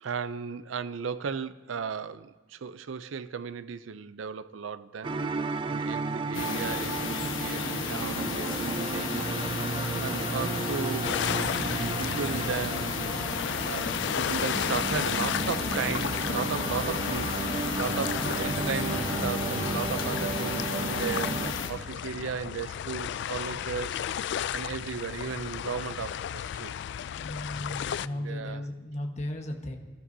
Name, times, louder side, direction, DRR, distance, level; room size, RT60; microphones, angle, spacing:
voice 1, 0.0-5.2 5.7-9.3 9.8-11.2 11.5-17.4 17.8-21.4 21.7-24.1 24.5-26.7 28.1-28.7, right 6 dB, 80° right, 0.5 m, -35 dB
sound 1, 5.0-21.5, right 3 dB, 25° right, 0.4 m, -33 dB
sound 2, 6.3-21.7, left 4 dB, 85° left, 1.2 m, -33 dB
sound 3, 11.0-28.1, left 9 dB, 60° left, 0.3 m, -34 dB
voice 2, 27.1-29.8, left 1 dB, 35° left, 1.3 m, -36 dB
23.5 x 12.5 x 2.7 m
head